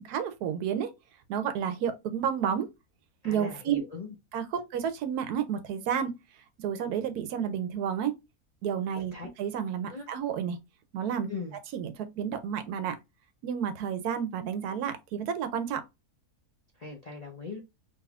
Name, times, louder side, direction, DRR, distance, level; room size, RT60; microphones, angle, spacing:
voice 1, 0.1-0.9 1.3-2.7 3.2-3.8 4.3-4.4 4.7-6.1 6.6-8.1 8.6-10.6 10.9-11.3 11.7-13.0 13.4-15.8, right 8 dB, 85° right, 1.1 m, -31 dB
voice 2, 3.2-4.1 4.5-4.6 9.1-9.3 9.9-10.1 11.3-11.5 16.8-17.6, left 4 dB, 70° left, 0.3 m, -39 dB
3.4 x 2.9 x 2.3 m
omnidirectional pair, 1.6 m